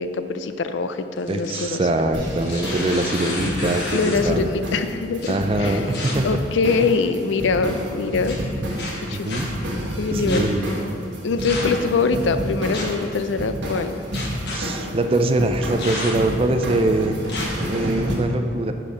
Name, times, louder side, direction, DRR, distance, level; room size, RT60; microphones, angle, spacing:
voice 1, 0.0-1.8 3.9-5.3 5.6-5.8 6.2-8.4 9.1-9.4 10.0-10.5 11.2-14.0, left 4 dB, 75° left, 10 dB, 0.4 m, -23 dB
sound 1, 1.2-1.7 2.3-4.3 5.2-5.3 5.9-6.1 6.8-7.2 8.2-8.4 8.8-9.4 10.3-10.4 11.4-11.8 12.7-13.0 14.1-14.6 15.8-16.3 17.3-17.5, left 2 dB, 60° left, 1.5 m, -31 dB
voice 2, 1.3-4.5 5.3-6.4 6.8-6.9 9.1-9.5 10.1-10.7 11.7-11.8 14.5-17.1 17.6-18.7, right 2 dB, 30° right, 6 dB, 0.4 m, -23 dB
sound 2, 2.1-18.1, equal, 70° right, 1.5 m, -29 dB
10.5 x 4.4 x 4.9 m, 2.5 s
head